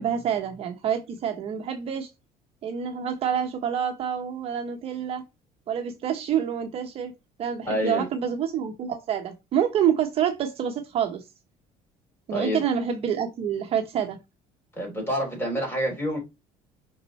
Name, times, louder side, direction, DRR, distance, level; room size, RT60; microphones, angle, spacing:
voice 1, 0.0-2.1 2.6-5.2 5.7-7.1 7.4-11.2 12.3-14.2, right 8 dB, 40° right, 0.8 m, -27 dB
voice 2, 7.6-8.0 12.3-12.6 14.7-16.2, equal, 15° left, 3.7 m, -27 dB
5.6 x 5.5 x 3.1 m
cardioid pair, 170°, 15 cm